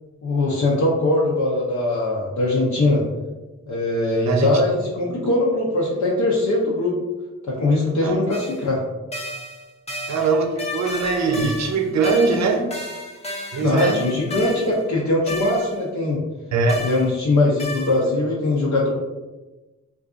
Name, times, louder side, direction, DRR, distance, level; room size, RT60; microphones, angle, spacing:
voice 1, 0.2-3.0 3.7-6.9 7.5-8.8 13.6-16.2 16.8-18.9, left 2 dB, 70° left, -4 dB, 0.6 m, -21 dB
sound 1, 8.3-8.6 9.1-14.8 15.3-15.8 16.7-17.1 17.6-18.1, left 2 dB, 20° left, 0.6 m, -33 dB
voice 2, 10.1-12.7 13.5-14.0 16.5-16.8, right 4 dB, 65° right, 3 dB, 0.6 m, -21 dB
3.9 x 2.4 x 2.4 m, 1.2 s
wide cardioid pair, 100°, 30 cm